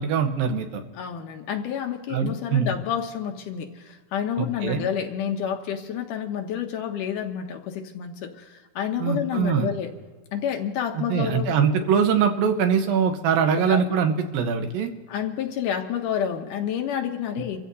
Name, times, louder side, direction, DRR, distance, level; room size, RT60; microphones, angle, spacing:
voice 1, 0.0-0.8 2.1-2.7 4.4-4.9 9.0-9.7 11.0-14.9, right 6 dB, 80° right, 6 dB, 2.9 m, -23 dB
voice 2, 1.0-9.9 10.3-11.6 13.7-14.0 15.1-17.6, left 8 dB, 75° left, 4 dB, 2.2 m, -29 dB
28.0 x 15.0 x 2.7 m, 1.4 s
omnidirectional pair, 4.1 m